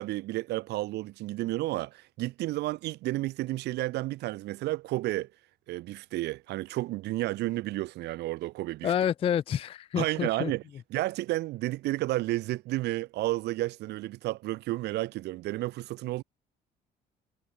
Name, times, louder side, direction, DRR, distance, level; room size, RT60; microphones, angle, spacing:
voice 1, 0.0-5.3 5.7-8.9 9.9-10.6 10.9-16.2, right 18 dB, 80° right, 2.7 m, -31 dB
voice 2, 8.8-10.5, left 9 dB, 35° left, 0.4 m, -28 dB
cardioid pair, 110°, 17 cm